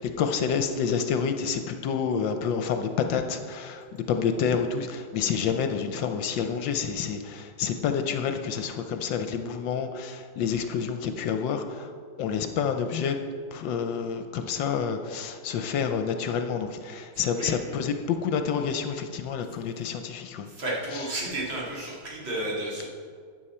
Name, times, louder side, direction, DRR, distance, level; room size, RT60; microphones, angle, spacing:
voice 1, 0.0-11.9 12.2-13.1 13.5-20.5 20.9-21.1, left 6 dB, 70° left, 7 dB, 1.2 m, -28 dB
voice 2, 20.6-22.8, right 1 dB, 65° right, -5 dB, 3.2 m, -32 dB
12.5 x 8.2 x 4.3 m, 2.1 s
omnidirectional pair, 2.3 m